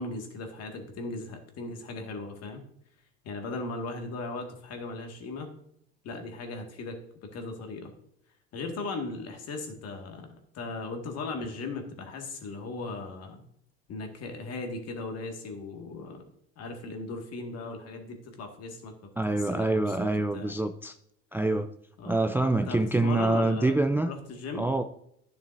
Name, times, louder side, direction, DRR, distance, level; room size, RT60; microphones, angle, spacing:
voice 1, 0.0-2.6 3.2-5.5 6.0-7.0 7.3-7.9 8.5-10.3 10.5-13.4 13.9-16.2 16.6-20.5 22.0-22.2 22.7-23.7 24.0-24.7, left 3 dB, 55° left, 2.0 m, -37 dB
voice 2, 19.2-21.0 21.3-21.7 22.0-24.1 24.5-24.8, right 2 dB, 5° right, 0.4 m, -26 dB
11.0 x 6.8 x 2.7 m
supercardioid pair, 85°, 31 cm